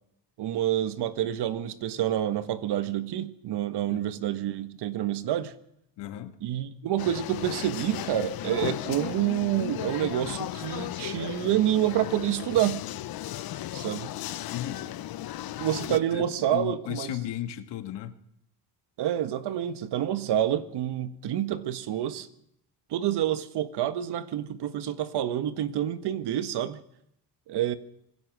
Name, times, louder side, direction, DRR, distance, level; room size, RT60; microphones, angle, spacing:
voice 1, 0.4-5.5 6.4-12.8 13.7-14.1 15.6-17.1 19.0-22.3 22.9-26.8 27.5-27.7, right 11 dB, 75° right, 1.7 m, -28 dB
voice 2, 3.8-4.2 6.0-6.4 14.5-14.9 15.9-18.2, left 12 dB, 85° left, 2.0 m, -35 dB
sound 1, 7.0-16.0, left 13 dB, 60° left, 0.9 m, -35 dB
26.0 x 17.5 x 6.3 m
cardioid pair, 135°, 41 cm